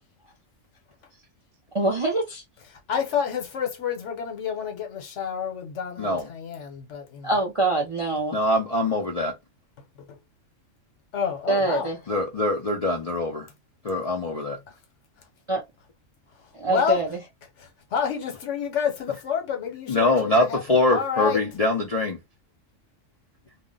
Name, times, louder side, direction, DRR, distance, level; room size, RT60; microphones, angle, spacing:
voice 1, 1.7-2.4 7.2-8.4 11.5-12.0 15.5-15.6 16.5-17.2, right 2 dB, 35° right, 0.5 m, -24 dB
voice 2, 2.7-7.3 10.1-10.2 11.1-11.9 16.7-17.0 17.6-21.4, left 7 dB, 65° left, 1.2 m, -29 dB
voice 3, 8.3-9.3 12.1-13.5 13.8-14.6 19.9-22.2, left 2 dB, 50° left, 0.4 m, -23 dB
2.5 x 2.1 x 3.7 m
omnidirectional pair, 1.3 m